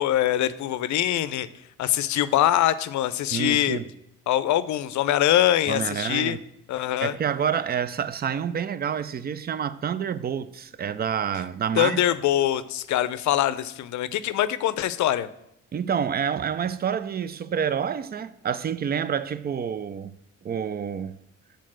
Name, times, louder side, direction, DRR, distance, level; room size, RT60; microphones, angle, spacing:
voice 1, 0.0-1.5 1.8-3.8 4.3-6.4 6.7-7.2 11.8-15.3, left 12 dB, 70° left, 0.5 m, -23 dB
voice 2, 3.3-3.9 5.7-6.4 7.0-12.0 15.7-20.1 20.4-21.1, right 8 dB, 30° right, 0.4 m, -28 dB
6.5 x 4.0 x 6.1 m
cardioid pair, 90°, 30 cm